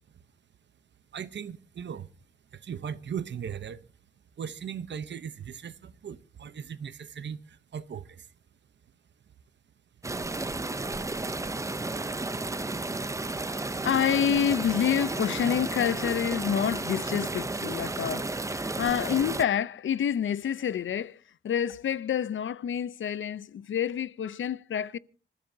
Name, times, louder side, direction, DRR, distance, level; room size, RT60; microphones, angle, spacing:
voice 1, 1.1-2.1 2.5-3.8 4.4-8.3, right 8 dB, 65° right, 0.9 m, -38 dB
sound 1, 10.0-19.4, right 2 dB, 15° right, 0.6 m, -33 dB
voice 2, 13.8-21.2 21.4-25.0, left 8 dB, 85° left, 0.6 m, -28 dB
27.0 x 13.5 x 2.7 m
wide cardioid pair, 160°, 20 cm